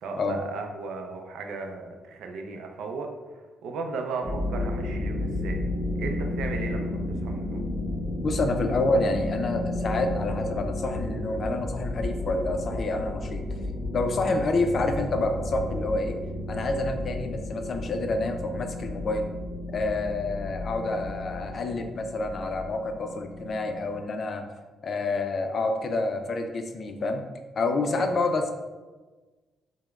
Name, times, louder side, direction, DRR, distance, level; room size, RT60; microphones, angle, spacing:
voice 1, 0.0-3.1 3.6-5.6 6.0-7.6 14.3-14.4 28.0-28.2, right 4 dB, 80° right, 3 dB, 0.4 m, -35 dB
sound 1, 4.2-24.0, left 1 dB, 20° left, 1.1 m, -33 dB
voice 2, 8.2-13.4 13.9-16.1 16.5-19.3 19.7-24.5 24.8-27.2 27.6-28.5, left 2 dB, 50° left, 6 dB, 0.4 m, -28 dB
4.9 x 2.1 x 2.3 m, 1.3 s
cardioid pair, 90°, 0 cm